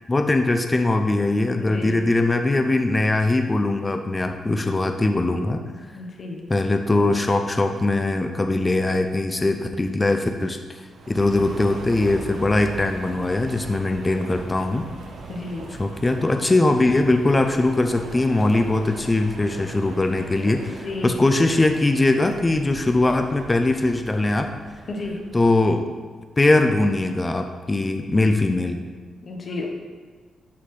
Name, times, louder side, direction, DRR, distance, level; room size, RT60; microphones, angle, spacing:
voice 1, 0.1-5.7 6.5-14.9 15.7-24.5 25.3-25.9 26.4-28.8, left 2 dB, 15° left, 5 dB, 0.4 m, -21 dB
voice 2, 1.6-2.1 5.9-6.5 15.3-15.7 20.8-21.2 24.9-25.2 29.2-29.7, left 2 dB, 35° left, 1 dB, 1.0 m, -32 dB
sound 1, 10.9-25.5, right 3 dB, 65° right, 0.9 m, -40 dB
11.0 x 4.2 x 3.2 m, 1.5 s
wide cardioid pair, 150°, 0 cm